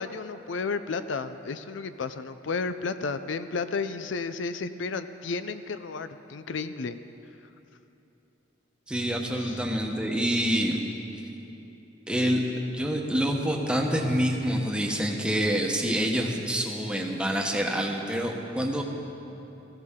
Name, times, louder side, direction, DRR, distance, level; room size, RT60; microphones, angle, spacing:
voice 1, 0.0-7.0 9.4-9.6, left 4 dB, 75° left, 11 dB, 0.5 m, -32 dB
voice 2, 8.9-10.8 12.1-12.4 12.7-18.8, equal, 5° right, 1 dB, 1.1 m, -27 dB
20.5 x 14.5 x 3.7 m, 3.0 s
head